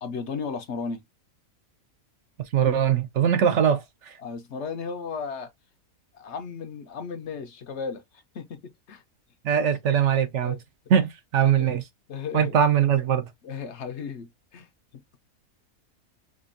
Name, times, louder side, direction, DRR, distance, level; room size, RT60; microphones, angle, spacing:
voice 1, 0.0-1.0 4.2-5.5 6.1-9.0 10.4-10.6 11.4-11.7 12.1-12.5 13.4-14.7, left 5 dB, 60° left, 0.9 m, -35 dB
voice 2, 2.4-4.2 9.4-10.6 10.9-11.8 12.3-13.3, right 8 dB, 65° right, 0.9 m, -22 dB
5.1 x 2.3 x 2.5 m
omnidirectional pair, 1.5 m